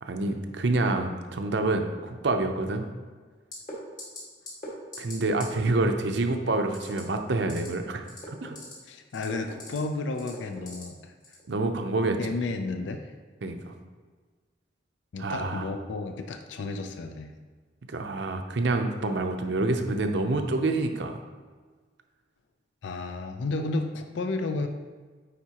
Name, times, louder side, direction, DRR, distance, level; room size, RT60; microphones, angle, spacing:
voice 1, 0.0-2.9 5.0-8.5 11.5-12.2 13.4-13.7 15.2-15.7 17.9-21.2, right 2 dB, 65° right, 5 dB, 0.6 m, -27 dB
sound 1, 3.5-3.7 4.0-4.2 4.5-4.7 4.9-5.1 5.4-5.5 6.7-7.0 7.4-7.7 8.0-8.7 9.1-9.8 10.2-10.8 11.2-11.4, left 2 dB, 40° left, 1.7 m, -41 dB
voice 2, 8.9-11.1 12.2-13.1 15.1-17.3 22.8-24.7, left 3 dB, 70° left, 6 dB, 0.4 m, -32 dB
9.1 x 4.2 x 2.9 m, 1.5 s
head